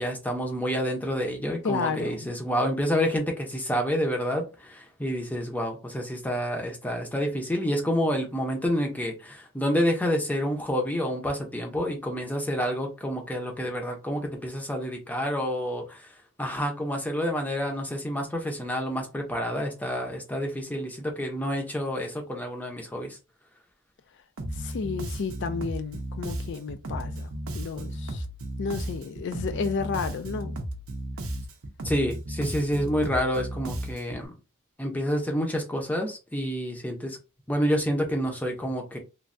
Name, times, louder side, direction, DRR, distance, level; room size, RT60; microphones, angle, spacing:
voice 1, 0.0-16.1 16.4-23.2 31.8-34.3 34.8-37.2 37.5-39.0, equal, 5° left, 0.6 m, -28 dB
voice 2, 1.6-2.3 24.6-28.2 28.6-30.6, left 5 dB, 50° left, 0.3 m, -32 dB
Bass guitar, 24.4-34.3, right 1 dB, 65° right, 0.5 m, -35 dB
3.2 x 2.2 x 2.5 m
head